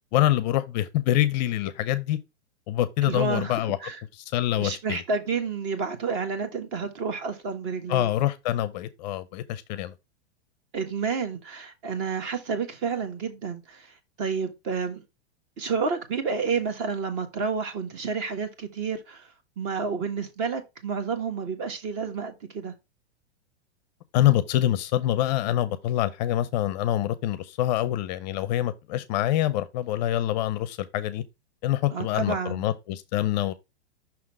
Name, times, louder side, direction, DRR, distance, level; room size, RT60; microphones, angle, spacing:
voice 1, 0.1-2.2 2.7-3.8 4.1-5.0 7.9-9.9 24.1-31.2 31.6-33.5, left 13 dB, 40° left, 0.5 m, -25 dB
voice 2, 3.0-4.0 4.6-8.1 10.7-13.9 14.2-15.0 15.6-19.3 19.6-22.7 31.9-32.6, right 5 dB, 40° right, 1.4 m, -30 dB
5.9 x 3.7 x 4.7 m
hypercardioid pair, 140°, 34 cm